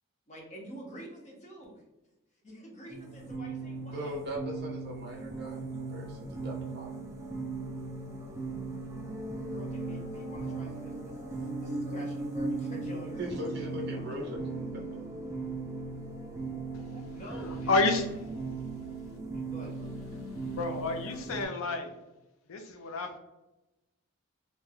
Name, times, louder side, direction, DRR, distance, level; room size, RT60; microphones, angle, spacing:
voice 1, 0.3-1.8 2.4-4.2 9.4-13.4 13.8-14.3 16.9-18.1 19.3-19.9, right 1 dB, 35° left, -2 dB, 0.7 m, -47 dB
sound 1, 2.9-21.4, right 3 dB, 15° right, 0.3 m, -38 dB
voice 2, 3.9-6.9 13.2-15.0, equal, 50° right, -2 dB, 0.7 m, -39 dB
voice 3, 17.7-18.1 20.6-21.9 22.5-23.2, left 3 dB, 75° left, 6 dB, 0.4 m, -29 dB
2.6 x 2.2 x 3.2 m, 0.98 s
head